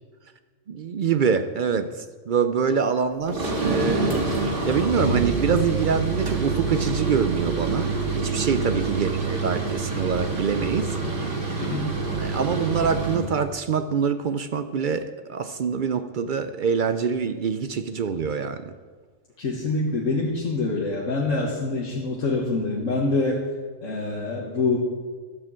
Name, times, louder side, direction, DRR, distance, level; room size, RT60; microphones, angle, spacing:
voice 1, 0.7-11.0 12.2-18.7, right 6 dB, 60° right, 10 dB, 0.5 m, -25 dB
sound 1, 3.3-13.3, right 3 dB, 45° right, 2.1 m, -26 dB
voice 2, 11.6-11.9 19.4-23.4 23.8-24.8, left 3 dB, 75° left, -3 dB, 1.8 m, -25 dB
12.0 x 6.7 x 7.5 m, 1.5 s
omnidirectional pair, 1.3 m